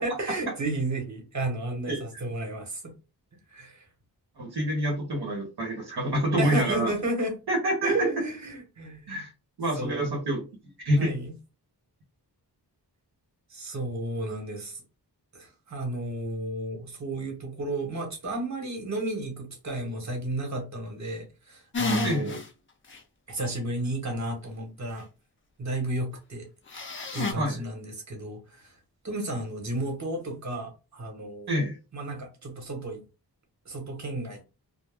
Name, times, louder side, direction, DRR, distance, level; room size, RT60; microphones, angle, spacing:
voice 1, 0.0-2.9 3.5-3.8 6.4-7.4 7.8-9.2 9.8-10.2 11.0-11.3 13.5-14.8 15.3-22.4 23.3-25.1 25.6-26.5 27.1-28.7 29.0-31.5 31.9-33.0 33.7-34.4, right 2 dB, 45° right, 2 dB, 1.0 m, -32 dB
voice 2, 1.9-2.2 4.4-6.9 7.5-8.1 9.1-9.3 9.6-10.4 10.8-11.1 22.0-22.3 27.4-27.6 31.5-31.8, equal, 70° right, 0 dB, 0.8 m, -27 dB
sound 1, 21.7-22.5 22.9-23.0 26.7-27.3, left 2 dB, 30° left, 0.5 m, -29 dB
2.2 x 2.0 x 3.3 m, 0.29 s
wide cardioid pair, 90°, 40 cm